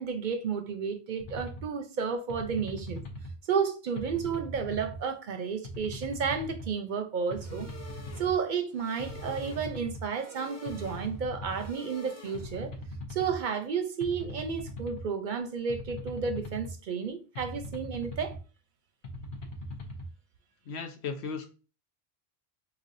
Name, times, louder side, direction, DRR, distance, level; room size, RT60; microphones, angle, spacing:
voice 1, 0.0-3.0 3.5-7.7 8.2-12.7 13.1-18.4, right 6 dB, 55° right, 0.6 m, -32 dB
sound 1, 1.2-1.6 2.3-3.3 4.0-5.0 5.6-6.7 7.3-8.3 9.0-10.0 10.7-11.7 12.3-13.4 14.0-15.0 15.7-16.7 17.4-18.4 19.0-20.1, left 1 dB, 55° left, 0.8 m, -40 dB
sound 2, 7.3-12.7, equal, 20° left, 0.4 m, -49 dB
voice 2, 20.7-21.5, left 5 dB, 90° left, 1.0 m, -36 dB
5.0 x 2.3 x 2.5 m
omnidirectional pair, 1.1 m